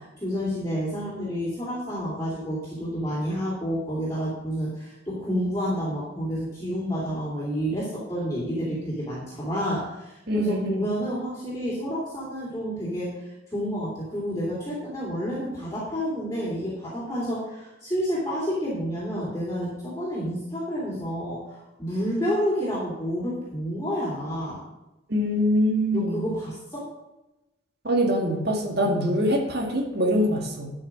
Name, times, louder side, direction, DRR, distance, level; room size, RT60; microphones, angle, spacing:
voice 1, 0.0-24.6 25.9-26.9, equal, 15° left, -7 dB, 3.1 m, -29 dB
voice 2, 10.3-10.7 25.1-26.2 27.8-30.7, equal, 55° right, 1 dB, 2.1 m, -24 dB
11.5 x 6.0 x 6.1 m, 0.97 s
head